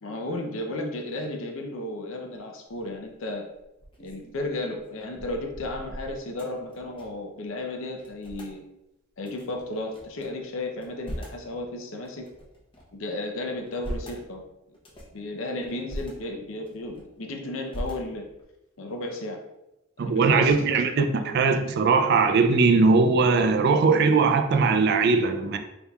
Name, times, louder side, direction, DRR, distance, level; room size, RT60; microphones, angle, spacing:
voice 1, 0.0-3.5 4.0-8.6 9.2-12.3 12.9-14.4 15.1-18.3 18.8-19.4 20.0-21.2, left 2 dB, 70° left, 2 dB, 0.6 m, -34 dB
sound 1, 2.7-3.1 3.6-7.3 7.6-7.7 7.9-8.5 9.2-10.3 10.7-11.5 12.0-13.0 13.5-14.2 14.7-15.2 15.7-16.1 16.6-17.2 17.7-18.4, equal, 25° left, 0.8 m, -40 dB
voice 2, 20.0-25.6, right 4 dB, 50° right, 6 dB, 0.4 m, -20 dB
4.1 x 3.5 x 2.3 m, 0.91 s
head